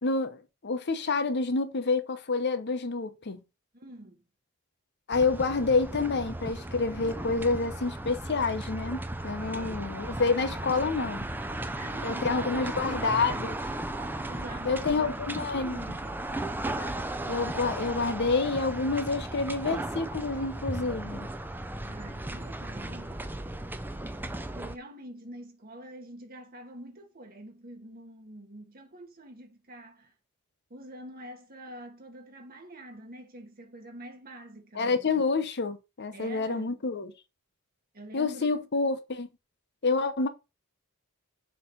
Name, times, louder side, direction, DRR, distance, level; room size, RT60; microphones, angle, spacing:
voice 1, 0.0-3.4 5.1-11.3 12.0-13.6 14.6-15.8 16.8-16.9 17.3-21.3 34.7-37.1 38.1-39.3 39.8-40.3, left 4 dB, 50° left, 0.8 m, -28 dB
voice 2, 3.7-4.2 9.4-9.9 11.6-13.4 14.3-16.3 21.8-23.3 24.5-30.1 30.7-35.3 36.1-36.8 37.9-38.7, right 1 dB, 45° right, 1.5 m, -46 dB
sound 1, 5.1-24.8, right 1 dB, 10° right, 0.5 m, -36 dB
7.0 x 3.1 x 5.2 m
head